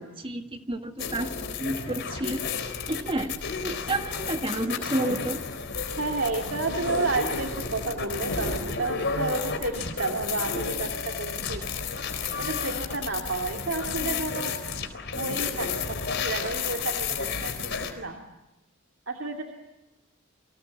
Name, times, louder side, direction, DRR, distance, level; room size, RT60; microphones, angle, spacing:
voice 1, 0.2-2.4 2.9-3.4 3.6-5.4, right 1 dB, 25° right, 6 dB, 1.7 m, -30 dB
sound 1, 1.0-17.9, left 5 dB, 55° left, 4.0 m, -32 dB
voice 2, 6.0-11.7 12.4-14.6 15.1-16.0 16.2-18.2 19.1-19.4, right 3 dB, 60° right, 3 dB, 2.6 m, -31 dB
29.5 x 25.0 x 7.7 m, 0.98 s
head